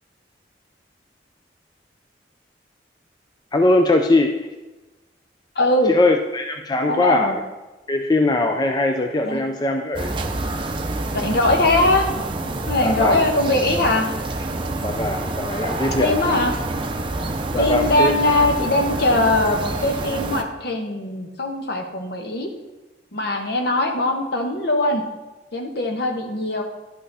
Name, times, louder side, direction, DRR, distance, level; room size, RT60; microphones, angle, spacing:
voice 1, 3.5-4.5 5.9-7.4 7.9-10.2 12.8-13.2 14.8-16.4 17.5-18.1, left 2 dB, 20° left, 5 dB, 0.4 m, -21 dB
voice 2, 5.5-5.9 6.9-7.3 9.2-9.4 11.1-12.1 12.7-14.1 16.0-16.5 17.6-22.5 23.1-25.0 25.5-26.6, left 2 dB, 60° left, 3 dB, 1.2 m, -21 dB
sound 1, 9.9-20.4, right 2 dB, 30° right, 0.6 m, -27 dB
11.5 x 5.6 x 4.1 m, 1.1 s
head